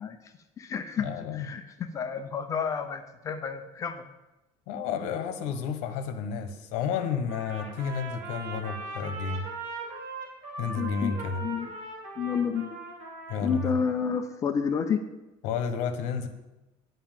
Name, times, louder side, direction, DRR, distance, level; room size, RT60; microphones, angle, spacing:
voice 1, 0.0-1.1 1.3-4.1 10.8-11.7 12.2-12.8 13.4-15.0, left 6 dB, 25° left, 8 dB, 0.5 m, -30 dB
voice 2, 1.0-1.5 4.7-9.5 10.6-11.4 13.3-13.7 15.4-16.3, left 6 dB, 75° left, 9 dB, 1.2 m, -31 dB
Trumpet, 7.3-14.2, right 3 dB, 65° right, 2.9 m, -40 dB
9.6 x 5.7 x 7.5 m, 1.0 s
cardioid pair, 175°, 12 cm